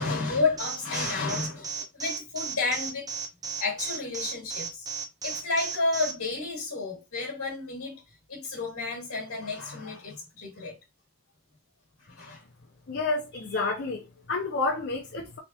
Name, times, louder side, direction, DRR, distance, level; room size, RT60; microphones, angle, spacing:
voice 1, 0.0-3.1 3.6-4.9 5.2-8.0 8.3-10.7 12.1-12.4, left 3 dB, 80° left, 1.5 m, -31 dB
Alarm, 0.6-6.1, right 6 dB, 15° right, 0.4 m, -34 dB
voice 2, 12.9-15.4, left 3 dB, 50° left, 0.6 m, -30 dB
3.4 x 3.3 x 2.9 m
head